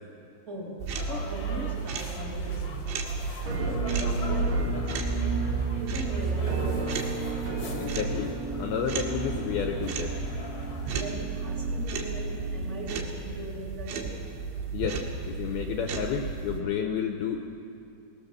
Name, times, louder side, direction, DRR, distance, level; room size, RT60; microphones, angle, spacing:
voice 1, 0.5-2.9 3.5-5.1 5.7-7.3 10.4-14.3, right 1 dB, 25° right, -2 dB, 1.7 m, -39 dB
sound 1, 0.8-16.6, right 4 dB, 85° right, 3.9 m, -32 dB
sound 2, 0.9-11.0, left 3 dB, 60° left, 1.7 m, -43 dB
Musical instrument, 3.5-13.2, right 3 dB, 55° right, 1.4 m, -36 dB
voice 2, 7.8-10.1 14.7-17.4, left 7 dB, 75° left, 4 dB, 2.3 m, -31 dB
21.0 x 20.0 x 6.8 m, 2.6 s
omnidirectional pair, 5.3 m